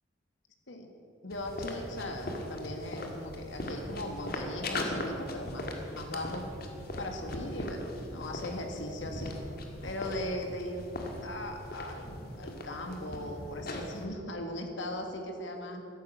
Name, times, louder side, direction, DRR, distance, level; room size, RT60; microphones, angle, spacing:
voice 1, 1.2-6.5 7.0-9.3 9.8-10.8 11.2-12.1 12.3-15.9, left 1 dB, 80° left, 4 dB, 2.0 m, -38 dB
Footsteps - concrete - OD - A, 1.3-14.1, left 1 dB, 55° left, 1.8 m, -39 dB
13.5 x 10.5 x 7.9 m, 2.9 s
head